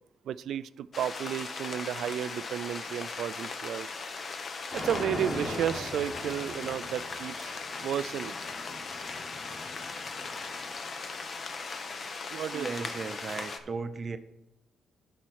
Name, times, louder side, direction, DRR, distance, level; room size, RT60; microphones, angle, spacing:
voice 1, 0.3-3.9 4.7-7.5 7.8-8.4 12.3-12.9, right 10 dB, 70° right, 16 dB, 0.3 m, -33 dB
sound 1, 0.9-13.6, left 4 dB, 45° left, 0.8 m, -38 dB
sound 2, 4.7-10.9, left 1 dB, 30° left, 2.5 m, -40 dB
voice 2, 12.5-14.2, right 4 dB, 40° right, 10 dB, 0.7 m, -36 dB
11.5 x 4.3 x 4.7 m, 0.87 s
cardioid pair, 90°, 0 cm